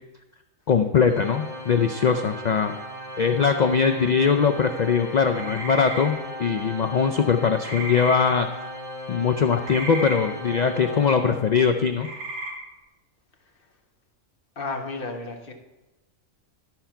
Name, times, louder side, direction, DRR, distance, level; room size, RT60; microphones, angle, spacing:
voice 1, 0.7-2.7 3.2-8.5 9.1-12.1, left 6 dB, 85° left, 7 dB, 0.3 m, -21 dB
Organ, 1.1-11.8, equal, 25° right, 1.9 m, -38 dB
sound 1, 5.3-6.0 7.6-8.2 9.6-10.2 12.0-12.5, right 2 dB, 45° right, 2.7 m, -33 dB
voice 2, 14.6-15.5, left 3 dB, 45° left, 3 dB, 1.2 m, -32 dB
12.5 x 4.4 x 5.7 m, 1.1 s
omnidirectional pair, 1.4 m